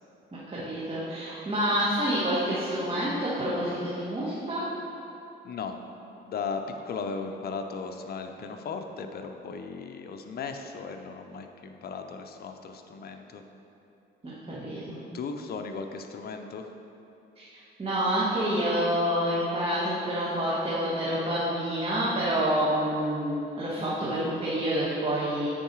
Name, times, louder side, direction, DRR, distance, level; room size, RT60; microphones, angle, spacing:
voice 1, 0.3-4.7 14.2-15.0 17.3-17.4 17.8-25.5, equal, 30° right, -9 dB, 1.6 m, -28 dB
voice 2, 5.4-5.8 6.2-13.4 15.1-16.7, left 5 dB, 50° left, 5 dB, 0.6 m, -36 dB
8.8 x 4.7 x 4.7 m, 2.8 s
cardioid pair, 90°, 20 cm